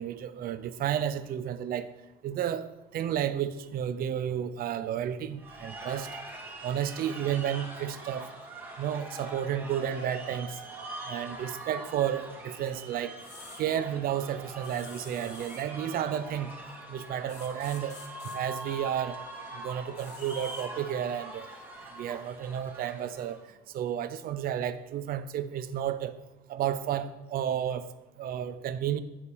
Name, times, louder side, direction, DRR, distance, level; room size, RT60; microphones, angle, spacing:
voice 1, 0.0-1.9 2.2-2.7 2.9-6.1 6.6-8.3 8.8-10.6 11.1-13.2 13.6-16.5 16.9-18.0 18.2-19.2 19.5-21.5 21.9-23.4 23.7-26.1 26.5-27.9 28.2-29.0, right 10 dB, 60° right, 10 dB, 0.6 m, -32 dB
sound 1, 5.4-23.4, right 1 dB, 10° right, 2.2 m, -43 dB
sound 2, 13.2-13.6 14.6-15.7 17.3-18.4 20.0-20.7, left 5 dB, 75° left, 1.6 m, -49 dB
10.0 x 4.2 x 7.1 m, 1.0 s
cardioid pair, 110°, 17 cm